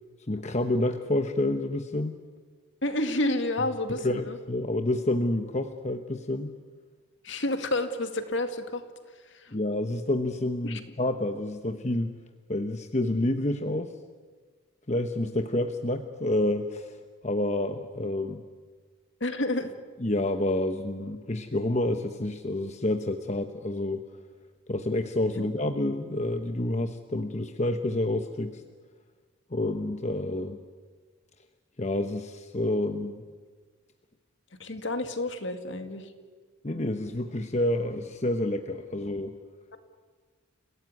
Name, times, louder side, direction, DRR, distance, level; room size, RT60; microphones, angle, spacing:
voice 1, 0.3-2.2 4.0-6.5 9.5-12.1 12.5-13.9 14.9-17.0 17.2-18.4 20.0-24.0 24.7-28.6 29.5-30.6 31.8-33.2 36.6-39.4, left 1 dB, 35° left, 6 dB, 1.0 m, -28 dB
voice 2, 2.8-4.4 7.2-8.8 9.3-9.5 10.6-10.8 19.2-19.7 25.3-25.4 34.6-36.1, left 1 dB, 60° left, 7 dB, 2.2 m, -29 dB
29.5 x 17.5 x 9.6 m, 1.5 s
head